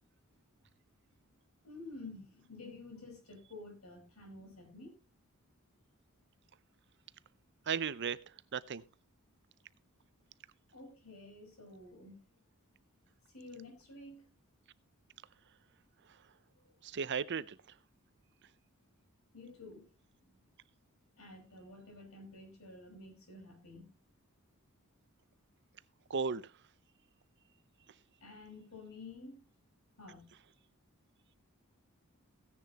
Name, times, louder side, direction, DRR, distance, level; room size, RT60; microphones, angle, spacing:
voice 1, 1.6-5.0 10.7-12.2 13.3-14.3 16.5-16.7 19.3-19.9 20.2-20.5 21.2-23.9 28.2-29.4 30.0-30.3, left 2 dB, 80° left, 5.0 m, -51 dB
voice 2, 7.7-8.8 16.1-16.2 16.8-17.6 26.1-26.5, right 6 dB, 55° right, 0.6 m, -36 dB
16.5 x 10.0 x 2.9 m
head